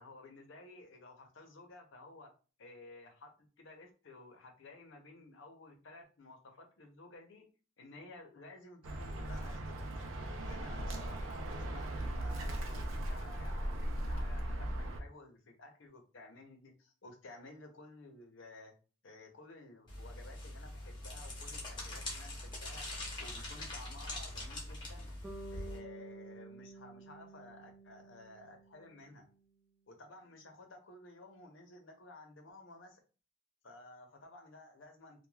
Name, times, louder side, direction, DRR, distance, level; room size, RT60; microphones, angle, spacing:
voice 1, 0.0-2.3 2.6-7.4 7.8-9.8 10.4-18.7 19.0-22.8 23.2-25.1 25.5-29.2 29.9-33.0 33.6-35.3, left 2 dB, 75° left, 3 dB, 0.7 m, -54 dB
Bird, 8.8-15.0, right 1 dB, 90° right, 0.5 m, -38 dB
sound 1, 19.9-25.8, left 1 dB, 25° left, 0.8 m, -43 dB
Bass guitar, 25.2-29.4, right 2 dB, 5° right, 0.4 m, -51 dB
3.1 x 2.2 x 2.3 m, 0.35 s
head